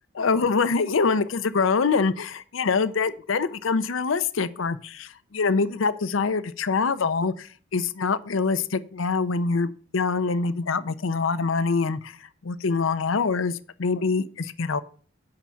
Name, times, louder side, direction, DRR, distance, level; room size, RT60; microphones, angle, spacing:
voice 1, 0.2-12.2 12.4-14.8, left 4 dB, 90° left, 15 dB, 0.6 m, -25 dB
8.7 x 5.7 x 7.1 m, 0.43 s
head